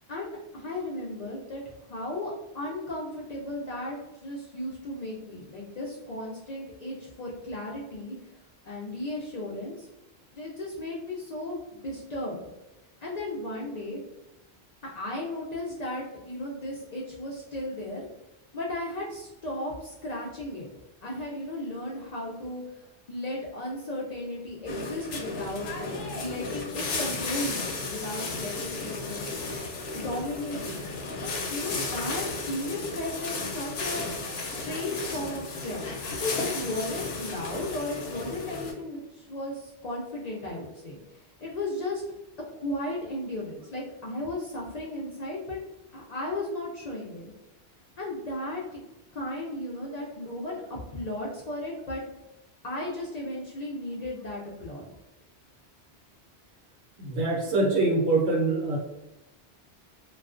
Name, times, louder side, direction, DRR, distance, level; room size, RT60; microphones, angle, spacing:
voice 1, 0.1-1.6 1.9-9.9 10.3-12.4 13.0-14.0 14.9-18.1 18.5-20.7 21.0-29.2 29.9-30.9 31.1-35.9 36.2-42.0 42.6-45.6 45.9-47.3 48.0-48.8 49.1-50.6 50.9-52.0 52.6-54.9, left 1 dB, 55° left, -4 dB, 0.5 m, -35 dB
sound 1, 24.7-38.7, left 3 dB, 75° left, 0.8 m, -34 dB
voice 2, 57.0-58.8, right 2 dB, 90° right, -2 dB, 1.0 m, -24 dB
2.3 x 2.2 x 2.4 m, 0.95 s
omnidirectional pair, 1.1 m